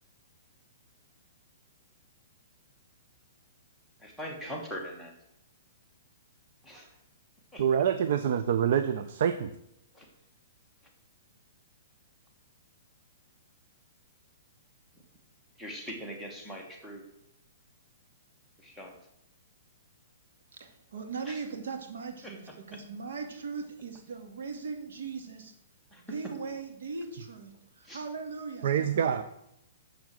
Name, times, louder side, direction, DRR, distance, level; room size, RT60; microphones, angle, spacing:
voice 1, 4.0-5.1 6.6-7.0 7.5-7.6 9.9-10.1 15.6-17.0 18.6-19.0 21.2-21.4 22.2-22.8 25.9-26.3 27.8-28.0, equal, ahead, -1 dB, 1.3 m, -42 dB
voice 2, 7.6-9.5 28.6-29.2, right 8 dB, 50° right, 10 dB, 0.6 m, -26 dB
voice 3, 20.5-25.5 26.0-29.2, right 5 dB, 75° right, 5 dB, 2.2 m, -39 dB
7.3 x 7.1 x 7.6 m, 0.79 s
hypercardioid pair, 170°, 0 cm